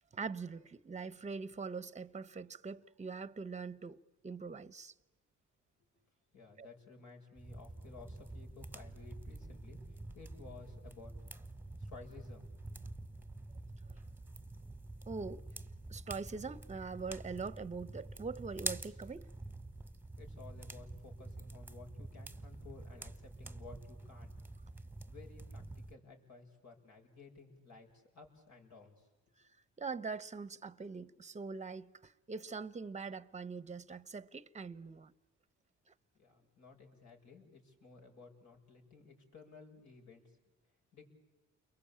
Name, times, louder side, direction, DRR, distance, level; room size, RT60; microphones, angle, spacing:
voice 1, 0.1-4.9 6.6-6.7 15.1-15.4 15.9-19.3 29.4-29.5 29.8-35.1, right 4 dB, 25° right, 0.9 m, -43 dB
voice 2, 6.3-11.1 11.8-12.5 20.2-24.3 25.1-29.1 36.1-40.4 40.9-41.1, left 4 dB, 65° left, 6.8 m, -55 dB
sound 1, 7.4-25.9, right 2 dB, 5° right, 1.3 m, -47 dB
29.5 x 22.5 x 8.7 m
cardioid pair, 90°, 30 cm